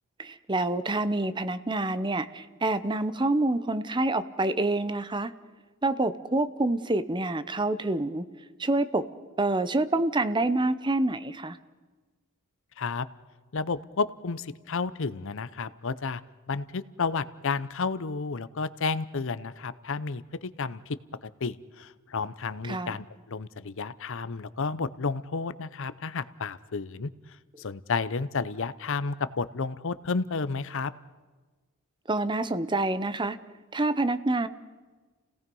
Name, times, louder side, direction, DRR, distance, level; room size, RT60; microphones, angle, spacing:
voice 1, 0.2-5.3 5.8-8.3 8.6-9.1 9.4-11.6 22.7-23.0 32.1-33.4 33.7-34.5, right 2 dB, 20° right, 13 dB, 0.8 m, -27 dB
voice 2, 12.8-13.1 13.5-16.2 16.5-21.0 21.2-27.1 27.6-30.9, left 4 dB, 60° left, 16 dB, 0.7 m, -31 dB
29.0 x 18.0 x 5.4 m, 1.3 s
head